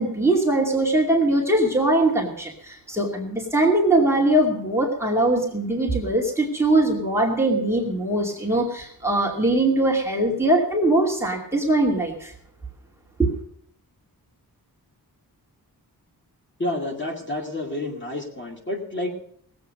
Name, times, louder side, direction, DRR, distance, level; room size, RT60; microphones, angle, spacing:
voice 1, 0.0-12.3 13.2-13.3, right 1 dB, 5° right, -2 dB, 2.4 m, -21 dB
voice 2, 16.6-19.1, left 1 dB, 30° left, 0 dB, 2.3 m, -29 dB
19.0 x 8.1 x 6.5 m, 0.65 s
wide cardioid pair, 175°, 37 cm